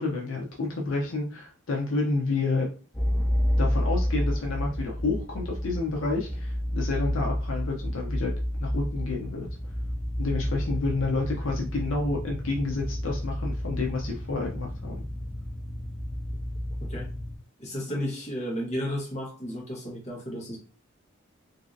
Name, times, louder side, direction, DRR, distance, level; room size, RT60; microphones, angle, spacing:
voice 1, 0.0-2.7 3.6-8.3 8.6-9.5 10.2-15.1, left 3 dB, 65° left, -1 dB, 0.6 m, -29 dB
sound 1, 2.9-17.4, equal, 5° left, 0.4 m, -30 dB
voice 2, 17.6-20.6, equal, 35° left, -2 dB, 1.0 m, -33 dB
3.1 x 2.6 x 2.5 m, 0.36 s
head